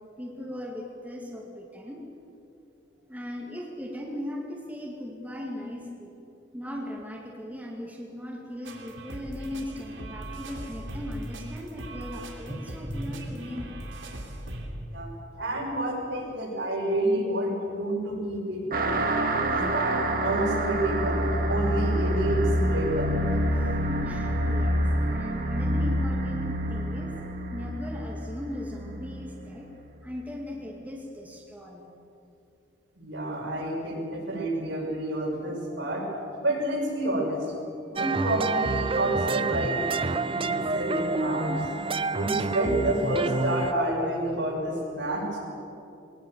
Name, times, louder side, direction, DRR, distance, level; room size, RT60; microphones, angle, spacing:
voice 1, 0.2-2.0 3.1-6.1 6.5-13.8 23.6-27.1 27.5-29.7 30.0-31.9, left 1 dB, 10° right, -2 dB, 2.3 m, -38 dB
sound 1, 8.6-14.7, right 1 dB, 90° right, 3.2 m, -39 dB
voice 2, 12.8-13.3 14.9-15.1 15.4-19.0 19.5-21.2 21.5-22.4 22.7-23.1 33.0-36.0 36.4-39.9 40.2-41.6 42.1-45.4, right 1 dB, 70° right, -2 dB, 6.5 m, -29 dB
sound 2, 18.7-29.7, right 1 dB, 50° right, 2.0 m, -27 dB
sound 3, 38.0-43.7, right 3 dB, 30° right, 0.6 m, -28 dB
22.0 x 18.5 x 7.3 m, 2.7 s
head